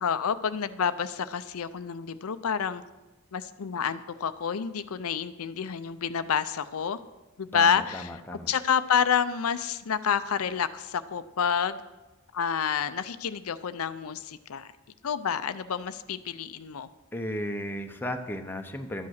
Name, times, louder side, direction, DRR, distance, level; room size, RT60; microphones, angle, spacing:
voice 1, 0.0-2.8 3.3-7.0 7.4-8.1 8.5-11.8 12.3-14.7 15.0-16.9, left 7 dB, 80° left, 12 dB, 0.5 m, -28 dB
voice 2, 7.5-8.5 17.1-19.1, equal, 10° left, 5 dB, 0.8 m, -35 dB
12.0 x 8.5 x 6.4 m, 1.1 s
head